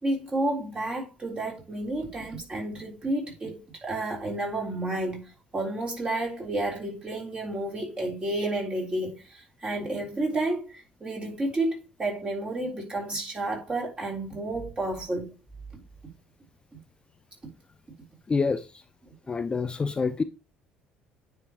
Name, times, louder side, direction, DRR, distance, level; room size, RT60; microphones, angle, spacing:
voice 1, 0.0-15.3 15.7-16.1, right 2 dB, 25° right, 3.8 m, -31 dB
voice 2, 18.3-18.6 19.3-20.2, left 4 dB, 20° left, 0.5 m, -26 dB
9.6 x 4.8 x 3.1 m
figure-of-eight pair, 55°, 4 cm